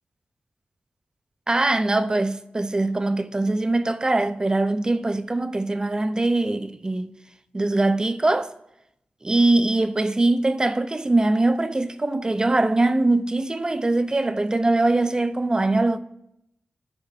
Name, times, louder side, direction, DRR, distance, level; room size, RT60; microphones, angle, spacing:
voice 1, 1.5-7.1 7.5-8.5 9.2-16.0, right 2 dB, 20° right, 0.3 m, -22 dB
14.5 x 5.3 x 2.7 m
wide cardioid pair, 155°, 4 cm